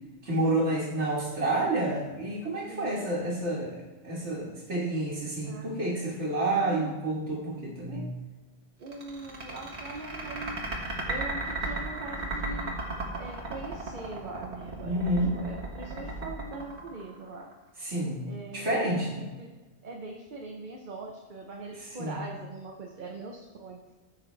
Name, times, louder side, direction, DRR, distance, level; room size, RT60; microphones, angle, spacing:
voice 1, 0.2-3.8 4.0-8.1 14.8-15.3 17.8-18.2 18.5-19.3 21.7-22.3, right 1 dB, 90° right, -6 dB, 2.1 m, -29 dB
voice 2, 2.7-3.1 5.4-5.7 6.6-6.9 7.9-8.1 8.8-10.6 11.1-12.7 13.1-17.5 18.2-18.9 19.2-19.5 19.8-23.8, right 3 dB, 50° right, 1 dB, 1.0 m, -41 dB
sound 1, 8.9-17.5, right 2 dB, 70° right, 2.0 m, -35 dB
14.0 x 5.8 x 3.3 m, 1.2 s
omnidirectional pair, 1.1 m